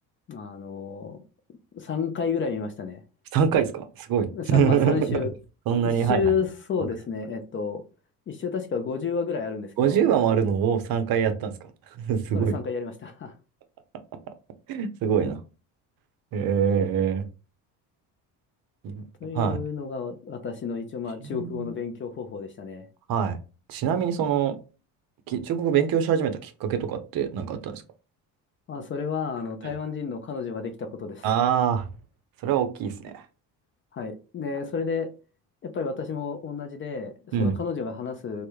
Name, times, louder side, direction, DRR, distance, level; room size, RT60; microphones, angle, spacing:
voice 1, 0.3-1.2 1.7-3.0 4.3-5.3 5.7-7.8 8.3-10.0 12.3-13.3 19.2-22.9 28.7-31.3 33.9-35.1 35.6-38.5, left 5 dB, 30° left, 0.4 m, -31 dB
voice 2, 3.3-5.2 5.7-6.2 9.8-11.5 12.0-12.5 14.7-15.4 16.3-17.2 18.8-19.0 19.3-19.6 21.2-21.7 23.1-23.4 23.7-24.6 25.3-27.8 29.6-29.7 31.2-31.9 32.4-33.2 37.3-37.5, right 8 dB, 60° right, 0.6 m, -24 dB
2.1 x 2.1 x 3.0 m
supercardioid pair, 80°, 41 cm